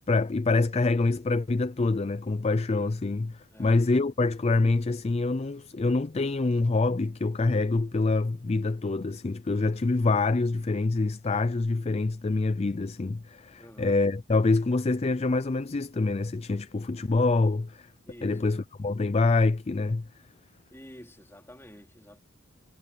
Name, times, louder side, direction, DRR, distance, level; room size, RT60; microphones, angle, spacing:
voice 1, 0.1-17.9 18.2-20.1, left 3 dB, 30° left, 0.4 m, -26 dB
voice 2, 13.6-13.9 18.0-18.4 20.7-22.2, equal, 10° left, 3.8 m, -49 dB
head